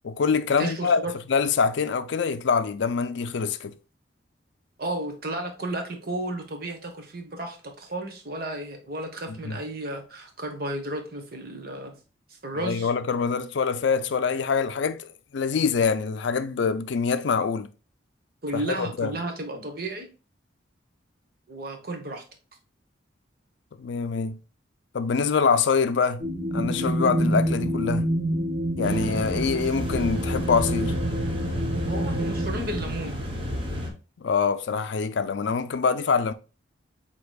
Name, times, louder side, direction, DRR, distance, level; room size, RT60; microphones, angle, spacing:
voice 1, 0.0-1.0 1.3-3.7 9.3-9.6 12.5-17.7 18.5-19.1 23.8-24.4 24.9-26.2 26.5-28.1 28.8-30.9 34.2-36.3, left 5 dB, 65° left, 0.4 m, -25 dB
voice 2, 0.6-1.1 4.8-11.9 12.3-12.9 18.4-20.1 21.5-22.2 26.7-26.9 31.9-33.2, right 1 dB, 50° right, 1.1 m, -33 dB
sound 1, 26.2-32.5, equal, 75° right, 1.3 m, -27 dB
sound 2, 28.8-33.9, equal, 25° right, 0.9 m, -31 dB
7.8 x 2.9 x 2.3 m
head